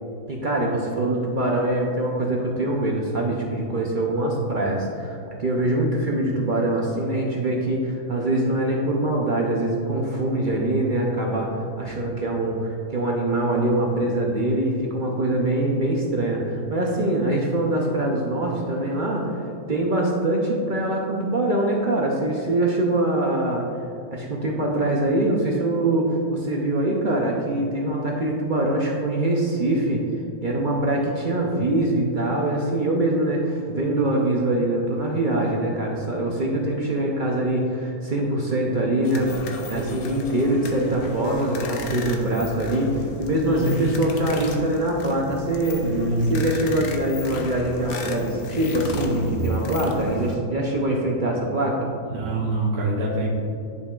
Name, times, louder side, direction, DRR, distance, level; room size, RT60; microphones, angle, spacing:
voice 1, 0.3-19.3 19.7-23.6 24.1-30.0 30.4-45.8 46.3-51.9, right 1 dB, 50° right, -1 dB, 0.6 m, -23 dB
sound 1, 39.0-50.4, left 2 dB, 75° left, 1.2 m, -33 dB
voice 2, 45.8-46.3 52.1-53.3, right 2 dB, 80° right, -5 dB, 1.4 m, -24 dB
10.0 x 5.4 x 2.4 m, 2.6 s
omnidirectional pair, 1.6 m